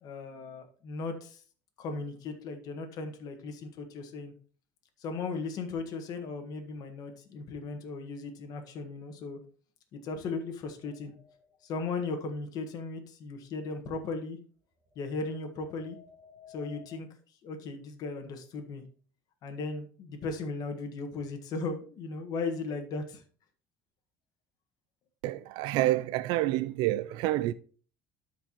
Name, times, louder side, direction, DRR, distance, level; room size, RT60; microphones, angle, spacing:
voice 1, 0.0-1.4 1.8-4.3 5.0-9.4 9.9-11.1 11.6-14.4 14.9-16.0 16.5-17.1 17.4-18.8 19.4-23.2, left 3 dB, 60° left, 1.6 m, -37 dB
sound 1, 10.8-11.5 14.8-17.0, left 7 dB, 15° right, 2.5 m, -55 dB
voice 2, 25.2-27.5, right 16 dB, 80° right, 0.3 m, -28 dB
13.0 x 4.6 x 3.0 m
cardioid pair, 115°, 7 cm